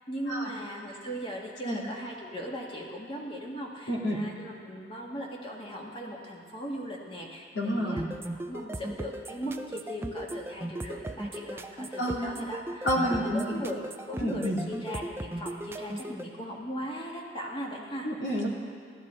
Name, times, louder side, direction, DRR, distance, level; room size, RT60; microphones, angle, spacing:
voice 1, 0.1-8.1 8.5-18.1, equal, 30° left, -2 dB, 1.7 m, -38 dB
voice 2, 3.9-4.2 7.5-8.2 12.0-12.4 12.8-13.5 14.2-14.6 18.0-18.5, equal, 80° left, -3 dB, 2.3 m, -29 dB
sound 1, 8.0-16.2, right 1 dB, 15° right, 0.4 m, -37 dB
15.0 x 12.0 x 4.4 m, 2.2 s
head